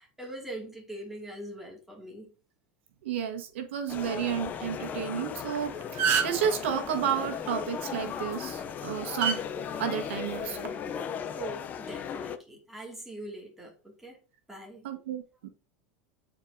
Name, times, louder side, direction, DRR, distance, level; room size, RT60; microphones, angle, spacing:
voice 1, 0.0-2.3 11.3-14.2 14.5-14.9, right 1 dB, 5° right, 2.3 m, -42 dB
voice 2, 3.0-9.4 9.8-10.7 14.8-15.5, right 8 dB, 90° right, 1.4 m, -32 dB
sound 1, 3.9-12.4, left 7 dB, 25° left, 0.6 m, -36 dB
sound 2, 5.4-5.6 5.8-6.5 8.1-8.3 9.2-9.4 10.4-10.7, right 7 dB, 40° right, 0.9 m, -26 dB
8.9 x 4.6 x 2.7 m
supercardioid pair, 150°, 6 cm